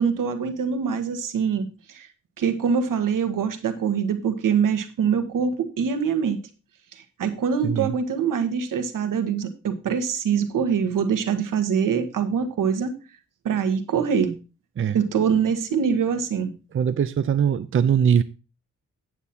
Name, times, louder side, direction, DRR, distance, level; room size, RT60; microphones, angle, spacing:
voice 1, 0.0-2.1 2.4-6.4 6.9-12.9 13.4-14.4 14.9-16.5, right 6 dB, 80° right, 1.5 m, -24 dB
voice 2, 16.7-18.2, right 8 dB, 40° right, 0.6 m, -21 dB
9.2 x 8.3 x 4.3 m
cardioid pair, 100°, 32 cm